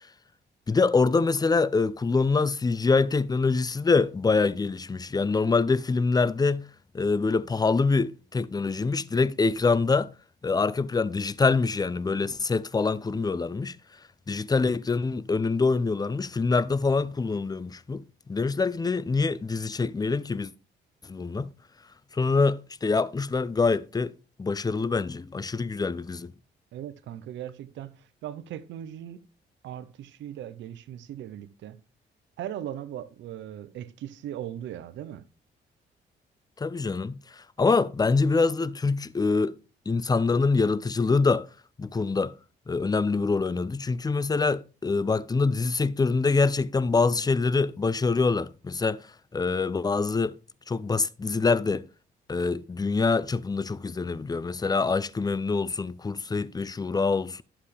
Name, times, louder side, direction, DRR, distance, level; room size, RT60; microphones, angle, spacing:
voice 1, 0.7-6.6 6.9-10.1 10.4-13.8 14.3-20.5 21.1-21.5 22.1-24.1 24.4-26.3 36.6-39.6 39.9-41.5 41.8-42.3 42.7-49.0 49.3-50.3 50.7-51.8 52.3-57.4, left 4 dB, 20° left, 0.6 m, -25 dB
voice 2, 26.7-29.2 29.6-31.8 32.4-35.2, right 11 dB, 80° right, 0.8 m, -38 dB
11.5 x 7.2 x 3.3 m
cardioid pair, 75°, 19 cm